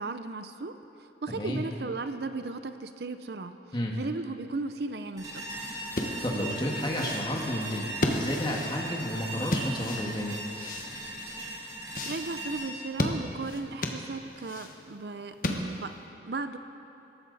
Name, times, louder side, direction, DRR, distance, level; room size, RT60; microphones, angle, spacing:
voice 1, 0.0-3.5 3.9-5.5 12.0-15.9 16.2-16.6, right 3 dB, 65° right, 10 dB, 0.6 m, -36 dB
voice 2, 1.3-1.6 3.7-3.9 5.9-10.4, equal, 25° left, -1 dB, 1.9 m, -32 dB
sound 1, 5.2-14.2, right 1 dB, 25° right, 3.4 m, -39 dB
sound 2, 5.9-16.0, left 1 dB, 50° left, 1.3 m, -34 dB
25.0 x 13.0 x 4.1 m, 2.9 s
head